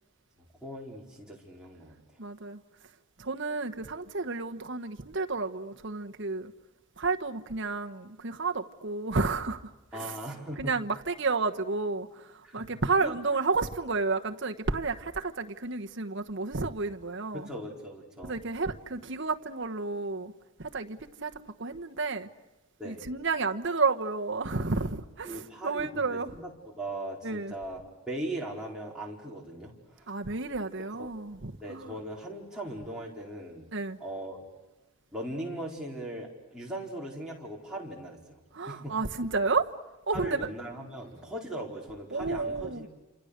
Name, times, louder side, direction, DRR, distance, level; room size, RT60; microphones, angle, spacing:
voice 1, 0.4-2.0 9.9-10.7 12.4-13.2 17.3-18.4 22.8-23.1 25.2-30.1 30.9-31.1 31.6-33.7 34.0-34.5 35.1-38.4 38.7-39.0 40.1-42.9, right 1 dB, 5° right, 4.6 m, -39 dB
voice 2, 2.2-2.6 3.2-6.5 7.0-9.6 9.9-10.2 10.6-17.5 18.2-20.3 20.6-21.3 21.6-22.3 22.8-26.3 27.2-27.5 30.1-31.9 33.7-34.0 38.5-39.7 40.1-40.5 42.1-42.9, right 3 dB, 55° right, 1.2 m, -31 dB
28.5 x 27.5 x 6.7 m
head